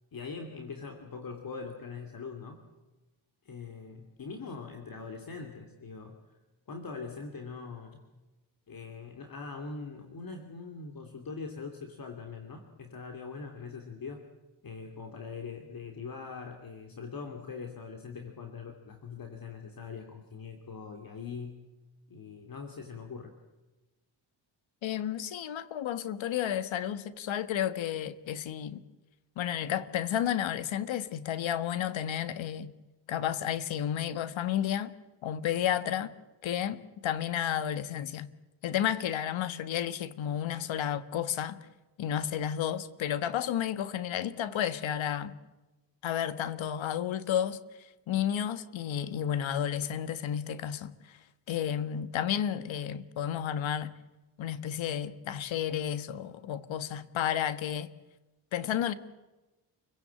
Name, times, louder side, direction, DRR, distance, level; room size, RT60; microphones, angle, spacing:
voice 1, 0.1-2.6 3.4-6.2 6.7-8.0 8.7-14.2 14.6-21.7 22.1-23.3, left 5 dB, 45° left, 3.0 m, -42 dB
voice 2, 24.8-28.8 29.4-32.7 33.1-34.9 35.2-36.1 36.4-38.3 38.6-41.6 42.0-45.4 46.0-51.2 51.5-53.9 54.4-57.9 58.5-58.9, left 10 dB, 75° left, 1.5 m, -32 dB
29.0 x 16.5 x 8.8 m
cardioid pair, 100°, 46 cm